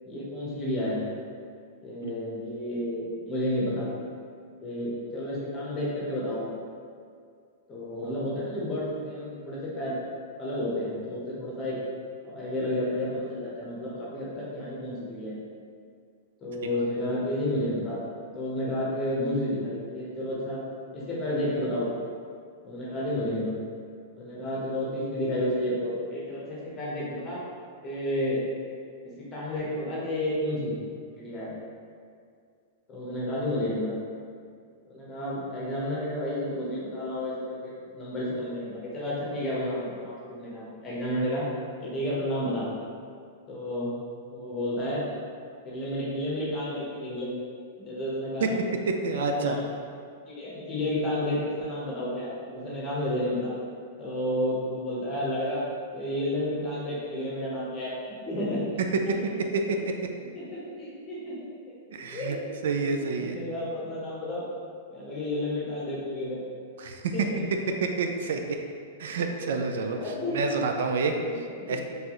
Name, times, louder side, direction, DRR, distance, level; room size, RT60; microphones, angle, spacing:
voice 1, 0.0-1.0 1.8-3.9 4.6-6.4 7.7-10.0 10.4-11.7 12.2-15.4 16.4-18.0 18.3-20.6 20.9-21.9 22.6-23.6 24.1-27.4 27.8-28.4 29.2-30.8 31.2-31.5 32.9-33.9 34.9-41.4 41.8-42.7 43.5-43.9 44.3-45.1 45.6-47.3 47.8-48.6 49.1-49.7 50.2-53.5 54.0-55.6 55.9-59.3 59.8-59.9 60.3-61.3 61.7-61.8 62.1-64.4 64.9-66.4 67.1-67.7 70.0-70.6 71.3-71.8, left 1 dB, 20° left, -6 dB, 1.0 m, -31 dB
voice 2, 49.0-49.6 59.7-59.8 61.9-62.4 62.6-63.4 66.8-67.1 67.8-68.4 69.0-70.0 70.3-71.2 71.7-71.8, right 4 dB, 75° right, 4 dB, 0.4 m, -28 dB
4.4 x 3.3 x 3.0 m, 2.2 s
supercardioid pair, 170°, 0 cm